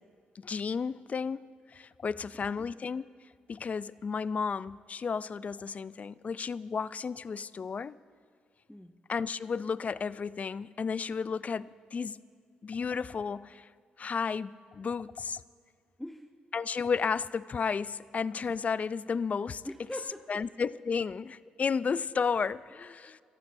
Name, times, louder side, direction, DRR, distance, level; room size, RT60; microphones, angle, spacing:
voice 1, 0.4-3.1 3.5-8.0 9.1-12.2 12.6-13.7 14.0-15.4 16.5-19.6 20.3-23.2, left 5 dB, 40° left, 0.4 m, -33 dB
voice 2, 2.3-2.7 8.7-9.0 16.0-16.4 19.6-20.4 23.0-23.2, equal, 5° left, 0.8 m, -43 dB
26.5 x 14.5 x 2.6 m
hypercardioid pair, 50°, 4 cm